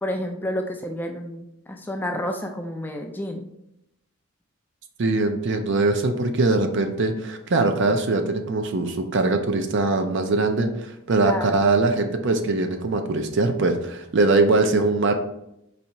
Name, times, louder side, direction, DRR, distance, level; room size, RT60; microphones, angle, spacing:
voice 1, 0.0-3.5 11.2-11.6, left 1 dB, 10° left, 3 dB, 0.3 m, -30 dB
voice 2, 5.0-15.1, right 3 dB, 55° right, 6 dB, 0.5 m, -22 dB
4.1 x 2.8 x 4.4 m, 0.82 s
head